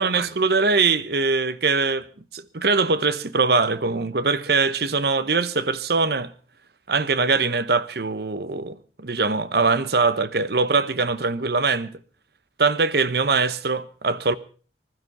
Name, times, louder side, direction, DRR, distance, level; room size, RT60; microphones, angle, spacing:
voice 1, 0.0-2.1 2.3-6.3 6.9-11.9 12.6-14.3, right 4 dB, 55° right, 0.9 m, -22 dB
20.0 x 12.5 x 5.4 m
head